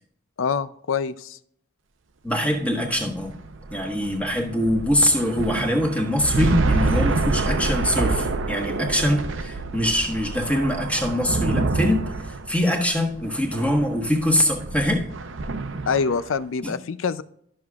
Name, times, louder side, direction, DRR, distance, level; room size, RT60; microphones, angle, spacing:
voice 1, 0.4-1.4 15.9-17.2, left 5 dB, 85° left, 15 dB, 0.5 m, -25 dB
voice 2, 2.2-3.3 3.7-15.0 16.6-16.7, left 1 dB, 5° left, 2 dB, 1.3 m, -23 dB
sound 1, 2.8-16.4, right 3 dB, 80° right, 0.7 m, -27 dB
13.0 x 6.3 x 2.4 m, 0.67 s
head